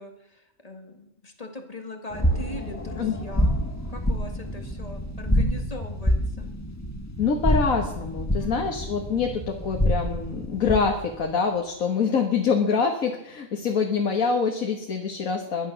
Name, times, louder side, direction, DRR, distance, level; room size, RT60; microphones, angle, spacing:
voice 1, 0.0-3.5 3.9-6.5 8.4-8.7, left 2 dB, 25° left, 4 dB, 2.2 m, -40 dB
sound 1, 2.1-11.0, equal, 10° left, 1.6 m, -27 dB
voice 2, 7.2-15.7, left 5 dB, 85° left, 2 dB, 1.9 m, -25 dB
22.5 x 9.3 x 6.1 m, 0.83 s
omnidirectional pair, 1.4 m